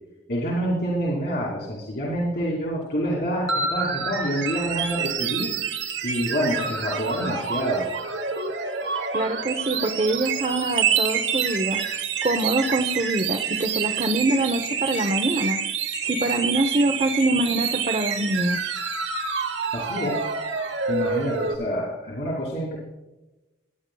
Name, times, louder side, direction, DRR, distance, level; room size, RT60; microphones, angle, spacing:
voice 1, 0.3-5.5 6.0-7.9 19.7-20.2 20.9-22.8, equal, 65° left, -4 dB, 2.6 m, -27 dB
sound 1, 3.5-21.6, right 6 dB, 80° right, 1.4 m, -27 dB
voice 2, 9.1-11.8 12.2-15.6 16.0-18.6, right 2 dB, 40° right, 3 dB, 0.8 m, -24 dB
18.5 x 9.6 x 2.3 m, 1.0 s
head